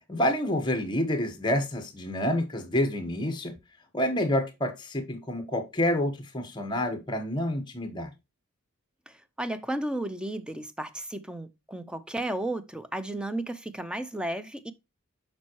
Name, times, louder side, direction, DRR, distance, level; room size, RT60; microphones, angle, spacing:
voice 1, 0.1-3.5 3.9-8.1, left 1 dB, 20° left, 1.1 m, -28 dB
voice 2, 9.1-14.7, right 1 dB, 5° right, 0.4 m, -33 dB
7.3 x 5.4 x 2.9 m
head